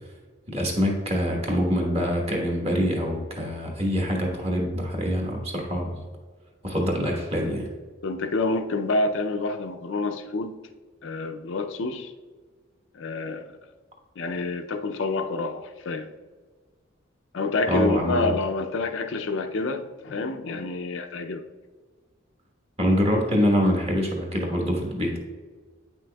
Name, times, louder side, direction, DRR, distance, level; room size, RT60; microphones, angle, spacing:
voice 1, 0.5-6.0 6.6-7.7 17.7-18.3 22.8-25.2, equal, 30° right, 0 dB, 1.2 m, -25 dB
voice 2, 8.0-10.6 11.0-12.1 12.9-13.5 14.2-16.1 17.3-21.4, left 3 dB, 70° left, 7 dB, 0.4 m, -28 dB
8.8 x 6.0 x 2.3 m, 1.5 s
head